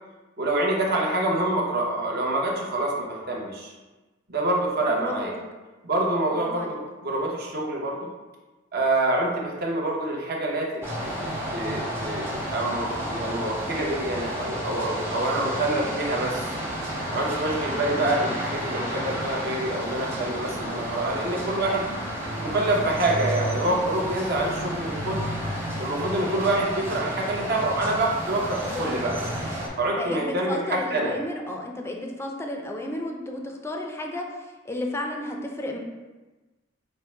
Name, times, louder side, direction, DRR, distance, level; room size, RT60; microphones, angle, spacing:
voice 1, 0.4-3.7 4.3-5.4 5.8-8.1 8.7-16.6 17.1-21.8 22.4-25.2 25.8-29.1 29.8-31.1, right 2 dB, 55° right, -2 dB, 0.8 m, -26 dB
voice 2, 4.9-5.4 6.3-6.7 28.6-29.4 29.9-34.3 34.6-35.8, left 1 dB, 15° left, 1 dB, 0.4 m, -33 dB
sound 1, 10.8-29.7, equal, 15° right, 0.7 m, -31 dB
4.5 x 2.1 x 4.4 m, 1.2 s
head